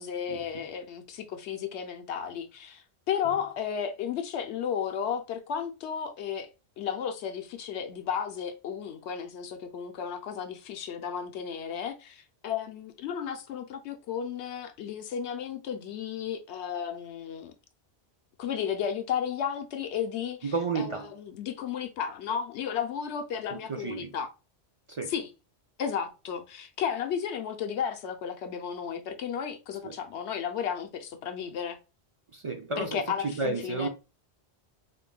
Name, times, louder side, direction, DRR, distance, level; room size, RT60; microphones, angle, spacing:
voice 1, 0.0-6.5 6.8-17.5 18.4-24.3 25.1-25.3 25.8-31.8 32.8-33.9, left 8 dB, 80° left, 0.9 m, -33 dB
voice 2, 20.4-21.1 23.5-24.2 24.9-25.1 29.8-29.9 32.3-33.9, right 4 dB, 45° right, 0.4 m, -32 dB
5.2 x 2.6 x 2.2 m
omnidirectional pair, 1.1 m